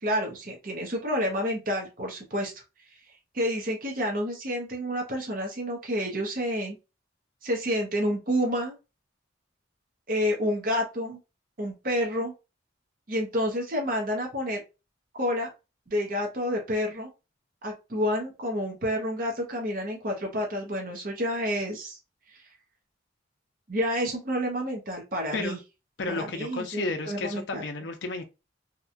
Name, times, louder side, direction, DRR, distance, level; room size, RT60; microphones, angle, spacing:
voice 1, 0.0-2.6 3.3-6.8 7.4-8.8 10.1-11.2 11.6-12.3 13.1-14.6 15.1-15.5 15.9-17.1 17.6-22.0 22.3-22.4 23.7-25.6 26.1-27.6, equal, 45° right, 0.7 m, -29 dB
voice 2, 26.0-28.2, left 3 dB, 65° left, 0.5 m, -32 dB
2.8 x 2.3 x 2.5 m
head